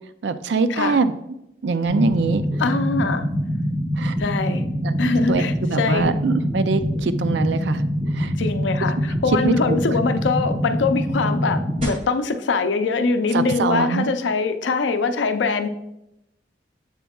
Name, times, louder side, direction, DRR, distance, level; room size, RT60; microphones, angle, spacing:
voice 1, 0.2-1.1 1.6-2.4 4.0-4.2 4.8-4.9 5.3-5.4 5.7-8.3 9.4-9.8 13.3-14.1, right 4 dB, 75° right, 12 dB, 0.4 m, -23 dB
sound 1, 1.9-11.9, equal, 40° right, 2.3 m, -24 dB
voice 2, 2.6-3.3 4.2-4.6 5.0-6.2 8.4-15.7, left 4 dB, 90° left, 8 dB, 0.5 m, -23 dB
7.3 x 7.1 x 2.3 m, 0.86 s
head